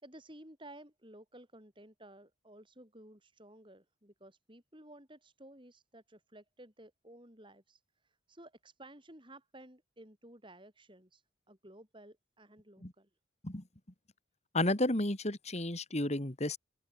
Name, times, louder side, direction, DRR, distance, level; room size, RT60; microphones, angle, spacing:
voice 1, 0.0-13.1, right 1 dB, 25° right, 6.9 m, -55 dB
voice 2, 14.5-16.6, left 1 dB, 35° left, 2.4 m, -32 dB
open air
head